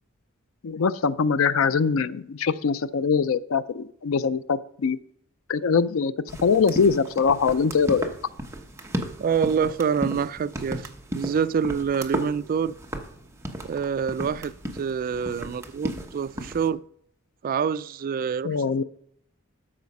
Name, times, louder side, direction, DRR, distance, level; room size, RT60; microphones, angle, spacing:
voice 1, 0.6-5.0 5.5-8.1 18.4-18.8, left 5 dB, 70° left, 0.4 m, -23 dB
sound 1, 6.3-16.7, right 1 dB, 15° right, 0.9 m, -35 dB
voice 2, 9.2-12.7 13.6-16.8 17.4-18.5, right 6 dB, 45° right, 0.3 m, -26 dB
13.0 x 4.9 x 5.3 m
head